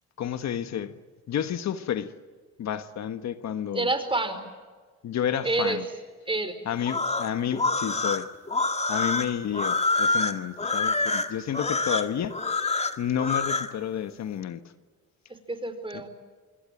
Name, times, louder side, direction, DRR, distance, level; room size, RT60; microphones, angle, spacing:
voice 1, 0.2-1.0 1.3-2.1 2.6-3.9 5.0-5.8 6.7-8.3 8.9-12.4 13.0-14.6, left 9 dB, 65° left, 1.4 m, -30 dB
voice 2, 3.7-4.4 5.4-5.8 6.3-6.6 15.3-16.1, right 2 dB, 15° right, 4.9 m, -28 dB
sound 1, 6.8-13.7, left 3 dB, 20° left, 1.9 m, -26 dB
26.0 x 23.5 x 9.2 m
cardioid pair, 90°, 30 cm